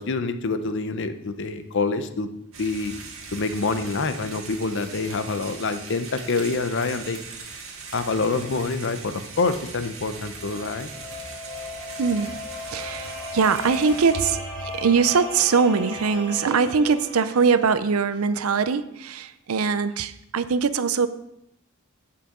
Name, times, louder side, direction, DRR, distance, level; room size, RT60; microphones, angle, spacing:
voice 1, 0.0-2.3 2.6-2.9 3.3-7.2 7.9-10.9, left 3 dB, 60° left, 10 dB, 0.7 m, -26 dB
sound 1, 2.5-14.1, right 4 dB, 70° right, 1.8 m, -40 dB
sound 2, 10.1-17.8, left 2 dB, 5° left, 4.4 m, -37 dB
voice 2, 12.0-12.4 12.7-21.1, right 5 dB, 90° right, 13 dB, 0.6 m, -22 dB
15.0 x 5.7 x 3.7 m, 0.80 s
head